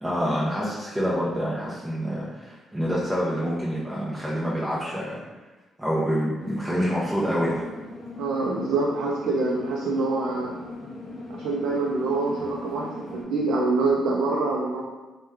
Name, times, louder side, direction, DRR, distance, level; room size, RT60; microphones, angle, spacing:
voice 1, 0.0-5.2 5.8-7.6, equal, 10° right, -7 dB, 0.5 m, -27 dB
sound 1, 6.4-13.2, left 2 dB, 55° left, 0.9 m, -39 dB
voice 2, 8.2-10.5 11.3-14.8, right 3 dB, 80° right, -3 dB, 0.4 m, -25 dB
3.0 x 2.1 x 3.5 m, 1.2 s
cardioid pair, 90°, 0 cm